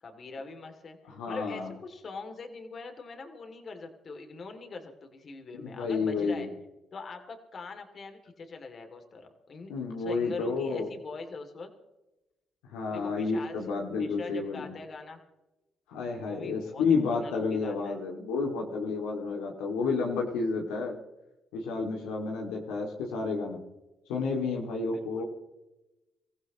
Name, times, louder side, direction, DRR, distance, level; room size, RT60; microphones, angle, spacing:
voice 1, 0.0-6.5 6.9-11.7 12.9-13.6 13.9-15.2 16.1-18.0 24.9-25.2, left 4 dB, 50° left, 5 dB, 2.8 m, -43 dB
voice 2, 1.1-1.7 5.6-6.5 9.7-10.9 12.7-14.7 15.9-21.0 21.5-23.6 24.1-25.2, left 4 dB, 85° left, 0 dB, 2.4 m, -30 dB
24.5 x 15.5 x 3.1 m, 0.99 s
supercardioid pair, 60°, 0 cm